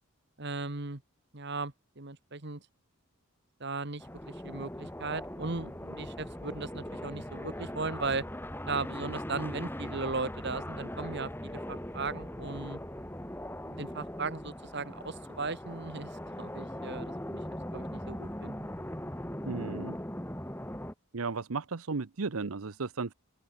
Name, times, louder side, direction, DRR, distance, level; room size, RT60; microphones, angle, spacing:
voice 1, 0.4-1.0 1.3-2.6 3.6-8.2 8.7-12.8 13.6-17.4 17.7-18.7, right 3 dB, 50° right, 1.7 m, -37 dB
sound 1, 4.0-20.9, left 1 dB, 10° left, 4.0 m, -40 dB
voice 2, 19.5-20.0 21.1-23.1, right 4 dB, 80° right, 0.8 m, -34 dB
open air
head